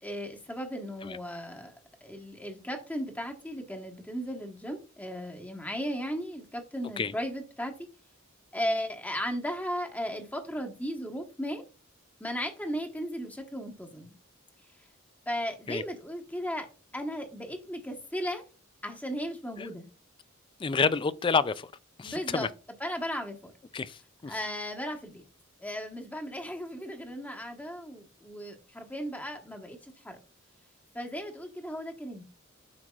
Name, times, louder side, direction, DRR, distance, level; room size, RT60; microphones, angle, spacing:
voice 1, 0.0-7.8 8.5-11.6 12.2-14.2 15.3-16.7 16.9-18.4 18.8-19.9 22.0-22.5 22.8-23.5 24.3-25.2 25.6-30.2 30.9-32.2, equal, 10° left, 1.2 m, -36 dB
voice 2, 20.6-21.7 22.0-22.5 23.7-24.3, left 5 dB, 25° left, 0.3 m, -29 dB
8.2 x 6.2 x 2.4 m
head